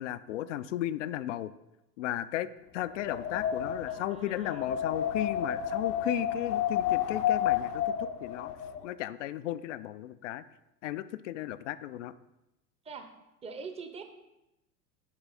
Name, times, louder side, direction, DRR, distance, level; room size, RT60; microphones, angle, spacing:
voice 1, 0.0-1.5 2.0-8.5 8.8-10.4 10.8-12.1, left 13 dB, 50° left, 14 dB, 0.5 m, -35 dB
Wind, 2.8-8.8, left 9 dB, 70° left, 0.8 m, -31 dB
voice 2, 3.9-4.7 12.8-13.1 13.4-14.0, right 5 dB, 15° right, 7 dB, 0.7 m, -43 dB
11.0 x 4.7 x 4.1 m, 0.93 s
figure-of-eight pair, 85°, 49 cm